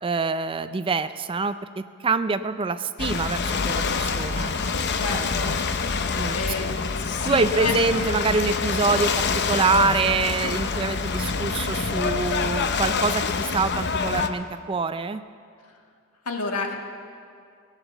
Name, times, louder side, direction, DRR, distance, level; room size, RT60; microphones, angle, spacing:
voice 1, 0.0-4.5 5.1-5.5 6.1-6.4 7.3-15.2, right 4 dB, 25° right, 12 dB, 0.4 m, -25 dB
Ocean / Boat Water vehicle, 3.0-14.3, left 5 dB, 50° left, 0.7 m, -26 dB
voice 2, 4.9-5.5 5.9-7.8 16.2-16.7, left 4 dB, 75° left, 2 dB, 1.6 m, -30 dB
18.5 x 9.1 x 6.9 m, 2.3 s
head